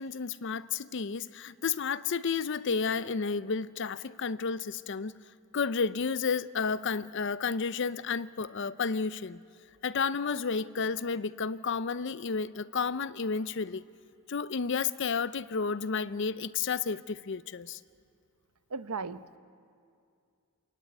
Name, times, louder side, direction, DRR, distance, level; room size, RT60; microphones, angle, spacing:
voice 1, 0.0-5.2 5.5-9.4 9.8-13.8 14.3-17.8, left 5 dB, 55° left, 0.5 m, -31 dB
voice 2, 18.7-19.4, right 4 dB, 90° right, 0.8 m, -36 dB
27.5 x 15.5 x 9.6 m
head